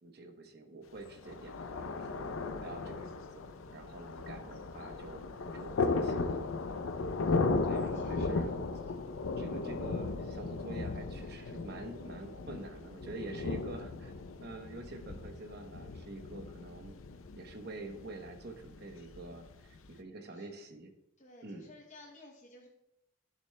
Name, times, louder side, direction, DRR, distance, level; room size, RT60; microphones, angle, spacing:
voice 1, 0.0-3.3 3.7-6.8 7.6-8.6 9.4-14.1 14.4-16.9 17.4-20.9 21.4-21.7, right 2 dB, 55° right, 6 dB, 0.9 m, -47 dB
Thunder, 1.0-19.9, left 3 dB, 90° left, 0.6 m, -36 dB
voice 2, 7.5-8.3 20.3-20.5 21.2-22.7, left 2 dB, 35° left, -1 dB, 0.8 m, -56 dB
11.5 x 6.9 x 2.2 m, 0.86 s
head